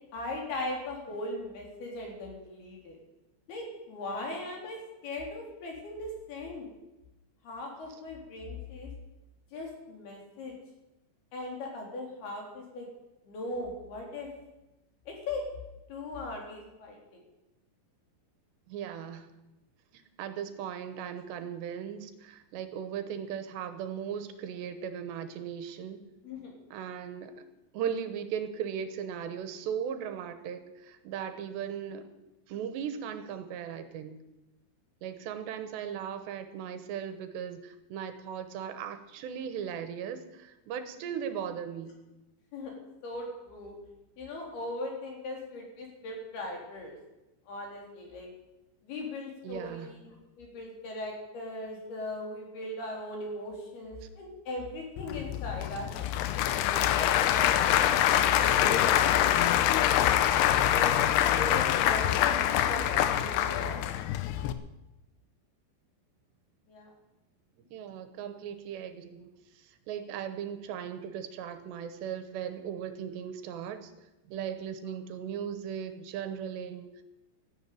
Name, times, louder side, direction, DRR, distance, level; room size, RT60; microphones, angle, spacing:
voice 1, 0.1-3.0 3.5-6.7 7.4-8.9 9.5-10.5 11.3-12.9 13.3-14.3 15.1-15.4 15.9-17.2 26.2-26.5 42.5-42.7 43.0-43.8 44.2-47.0 47.5-48.3 48.8-56.1 56.7-60.1 60.7-61.0 61.3-63.8 66.7-66.9, left 2 dB, 65° left, 0 dB, 5.4 m, -39 dB
voice 2, 18.7-19.3 19.9-26.0 26.7-27.4 27.7-32.1 32.5-34.2 35.0-42.0 49.4-50.0 54.0-54.1 61.9-62.2 67.7-73.9 74.3-77.0, right 8 dB, 80° right, 9 dB, 3.3 m, -38 dB
Applause / Crowd, 55.0-64.5, left 11 dB, 80° left, 2.7 m, -25 dB
13.5 x 11.0 x 9.3 m, 0.99 s
omnidirectional pair, 5.0 m